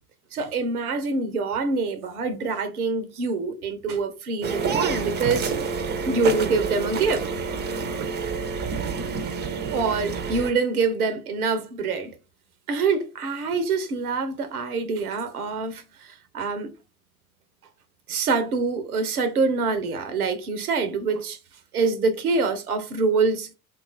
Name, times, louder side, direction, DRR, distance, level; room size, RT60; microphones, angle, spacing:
voice 1, 0.3-5.5 6.1-7.3 9.7-12.1 12.7-16.7 18.1-21.4 21.7-23.5, right 4 dB, 85° right, 0.6 m, -25 dB
sound 1, 4.4-10.5, right 5 dB, 25° right, 0.5 m, -28 dB
2.8 x 2.3 x 3.8 m
figure-of-eight pair, 65°, 44 cm